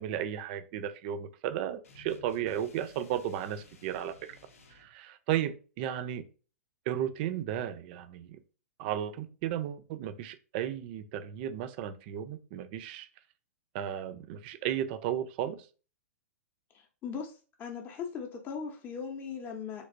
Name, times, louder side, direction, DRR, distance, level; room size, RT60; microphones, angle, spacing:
voice 1, 0.0-4.3 4.7-6.2 6.9-8.4 8.8-13.1 13.7-15.7, right 10 dB, 45° right, 0.4 m, -34 dB
sound 1, 1.8-4.9, left 3 dB, 75° left, 0.6 m, -56 dB
voice 2, 16.7-17.3 17.6-19.9, left 6 dB, 25° left, 0.6 m, -39 dB
3.3 x 2.8 x 2.5 m
figure-of-eight pair, 110°, 8 cm